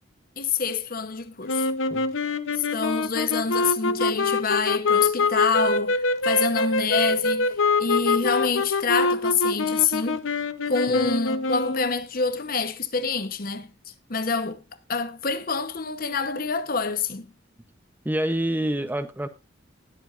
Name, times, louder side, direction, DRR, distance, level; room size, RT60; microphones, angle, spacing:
voice 1, 0.4-1.7 2.6-7.5 7.8-10.3 10.7-13.7 14.1-14.6 14.9-17.3, left 5 dB, 50° left, 1.0 m, -26 dB
sound 1, 1.5-12.0, left 3 dB, 85° left, 0.9 m, -25 dB
voice 2, 18.0-19.3, right 1 dB, 10° right, 0.7 m, -27 dB
19.5 x 7.9 x 2.5 m
head